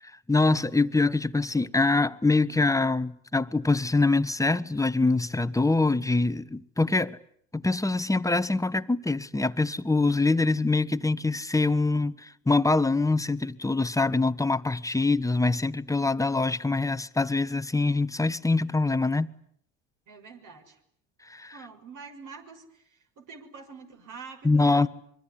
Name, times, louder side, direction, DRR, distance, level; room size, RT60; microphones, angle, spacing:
voice 1, 0.3-7.2 7.5-19.3 21.3-21.5 24.4-24.9, left 3 dB, 10° left, 1.2 m, -24 dB
voice 2, 20.1-20.8 21.5-24.9, right 5 dB, 55° right, 6.5 m, -46 dB
25.5 x 23.0 x 9.9 m
supercardioid pair, 80°, 38 cm